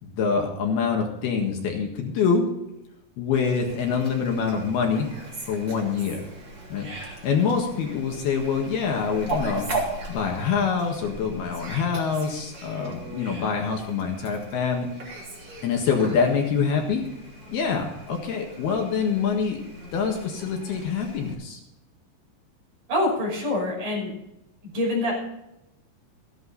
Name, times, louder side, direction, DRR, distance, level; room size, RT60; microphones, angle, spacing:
voice 1, 0.0-2.5 3.2-5.1 5.5-6.3 6.7-6.9 7.2-9.7 10.1-14.9 15.6-17.0 17.5-19.6 19.9-21.6, left 6 dB, 65° left, 2 dB, 3.4 m, -25 dB
Fowl, 3.3-21.3, right 2 dB, 30° right, 3.4 m, -38 dB
voice 2, 22.9-24.1 24.6-25.1, left 1 dB, 45° right, -2 dB, 7.1 m, -25 dB
15.0 x 11.0 x 4.2 m, 0.85 s
omnidirectional pair, 5.1 m